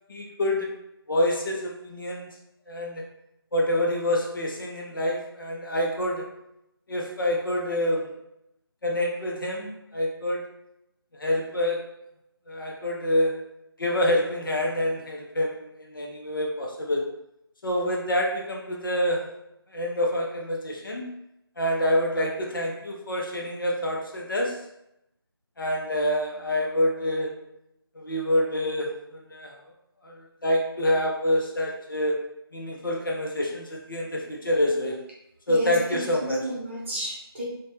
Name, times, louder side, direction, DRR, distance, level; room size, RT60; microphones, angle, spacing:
voice 1, 0.1-0.7 1.1-2.3 2.7-3.1 3.5-6.3 6.9-8.1 8.8-10.5 11.2-11.8 12.5-13.5 13.8-17.1 17.6-19.3 19.7-21.1 21.6-24.6 25.6-27.4 27.9-29.6 30.0-32.2 32.5-35.0 35.5-36.5, left 1 dB, 55° left, -1 dB, 0.6 m, -27 dB
voice 2, 35.5-37.4, right 1 dB, 30° right, -5 dB, 0.7 m, -32 dB
2.5 x 2.2 x 3.1 m, 0.83 s
figure-of-eight pair, 160°, 13 cm